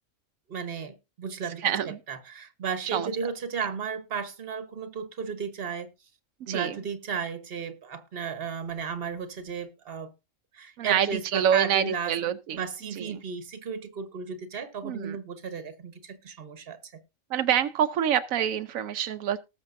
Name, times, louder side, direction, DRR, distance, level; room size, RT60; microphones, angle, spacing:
voice 1, 0.5-5.9 6.5-10.1 10.5-12.1 12.5-17.0, right 6 dB, 50° right, 1.4 m, -34 dB
voice 2, 1.6-2.0 2.9-3.1 6.4-6.8 10.8-12.6 13.0-13.1 14.8-15.2 17.3-19.4, right 9 dB, 90° right, 1.1 m, -26 dB
19.5 x 6.6 x 2.6 m
omnidirectional pair, 1.4 m